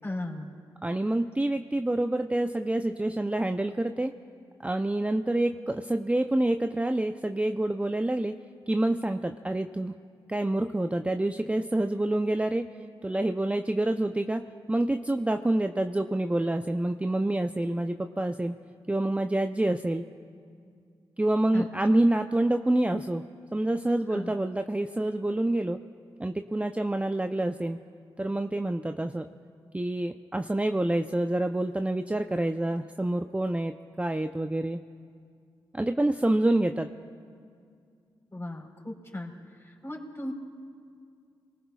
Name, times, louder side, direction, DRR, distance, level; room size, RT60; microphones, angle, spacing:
voice 1, 0.0-0.5 21.5-21.7 24.1-24.3 38.3-39.3 39.6-40.3, left 1 dB, 25° left, 0 dB, 4.2 m, -36 dB
voice 2, 0.8-4.1 4.6-8.3 8.7-9.9 10.3-12.6 13.0-14.4 14.7-18.6 18.9-20.0 21.2-23.2 23.5-25.8 26.2-27.8 28.2-29.3 29.7-34.8 35.7-36.9, right 1 dB, 15° right, 6 dB, 0.6 m, -27 dB
26.0 x 19.5 x 2.4 m, 2.3 s
supercardioid pair, 40°, 10 cm